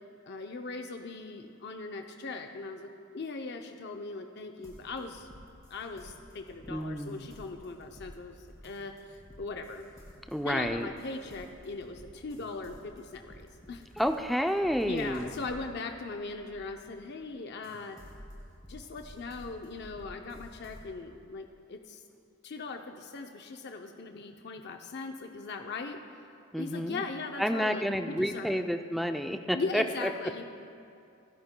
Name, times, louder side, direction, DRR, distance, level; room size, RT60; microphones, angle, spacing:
voice 1, 0.2-2.9 3.1-5.3 5.7-9.8 10.4-13.9 14.9-18.0 18.7-22.0 22.4-26.0 26.6-28.6 29.5-30.4, left 3 dB, 55° left, 4 dB, 0.6 m, -39 dB
sound 1, 4.6-17.2 17.6-20.9, equal, 15° left, 2.7 m, -52 dB
voice 2, 6.7-7.3 10.3-10.9 14.0-15.3 26.5-27.1 27.4-30.1, equal, ahead, 5 dB, 0.4 m, -30 dB
28.5 x 10.5 x 2.2 m, 2.6 s
head